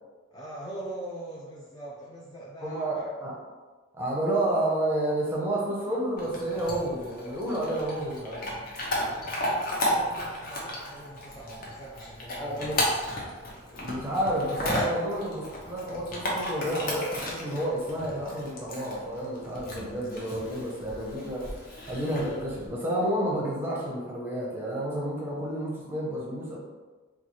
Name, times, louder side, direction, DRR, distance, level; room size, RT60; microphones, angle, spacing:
voice 1, 0.3-3.0 9.1-12.9, right 1 dB, 20° left, -5 dB, 0.3 m, -42 dB
voice 2, 2.6-3.3 3.9-8.6 12.4-12.8 13.7-26.6, right 1 dB, 10° right, -4 dB, 0.7 m, -30 dB
Chewing mastication / Dog, 6.2-22.7, equal, 45° left, 0.8 m, -34 dB
4.2 x 2.4 x 3.0 m, 1.3 s
head